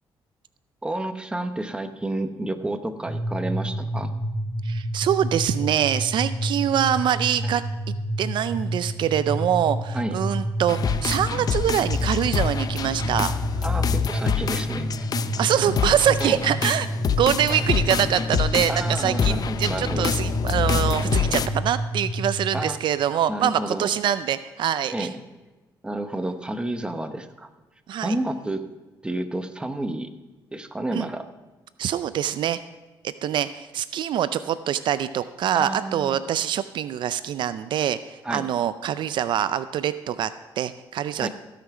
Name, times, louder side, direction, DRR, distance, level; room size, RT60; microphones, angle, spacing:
voice 1, 0.8-4.1 7.4-7.5 9.9-10.1 13.6-15.1 16.2-16.4 18.7-20.1 22.5-22.8 23.3-23.9 24.9-25.2 25.8-27.5 28.0-28.6 29.0-30.1 30.5-31.3 35.5-36.2 38.2-38.5 41.2-41.3, right 1 dB, 10° right, 8 dB, 0.9 m, -30 dB
sound 1, 3.1-22.6, right 1 dB, 50° right, 3.8 m, -29 dB
voice 2, 4.6-7.6 8.2-13.3 15.4-16.9 17.2-25.1 27.9-28.2 30.9-31.1 31.8-32.6 33.0-41.3, right 10 dB, 70° right, 14 dB, 0.4 m, -24 dB
sound 2, 10.7-21.5, left 7 dB, 50° left, 0.6 m, -26 dB
16.0 x 5.8 x 6.0 m, 1.1 s
cardioid pair, 90°, 8 cm